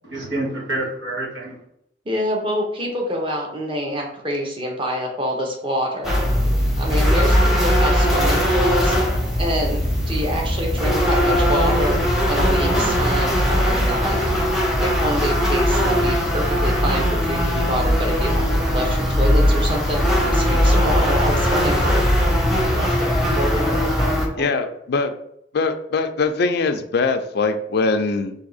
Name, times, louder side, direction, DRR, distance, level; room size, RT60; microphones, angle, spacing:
voice 1, 0.0-1.6 23.3-24.7, right 2 dB, 90° right, -4 dB, 1.4 m, -28 dB
voice 2, 2.0-6.1 6.8-9.0 9.4-9.8 10.1-14.2 14.8-20.0 20.3-22.0 22.7-23.1, equal, 30° right, 0 dB, 0.9 m, -26 dB
sound 1, 6.0-24.3, equal, ahead, 0.8 m, -19 dB
sound 2, 6.1-22.9, right 2 dB, 70° right, 0.4 m, -32 dB
voice 3, 24.4-25.1 25.5-28.3, left 3 dB, 60° left, 8 dB, 0.4 m, -22 dB
3.6 x 2.8 x 4.0 m, 0.75 s
head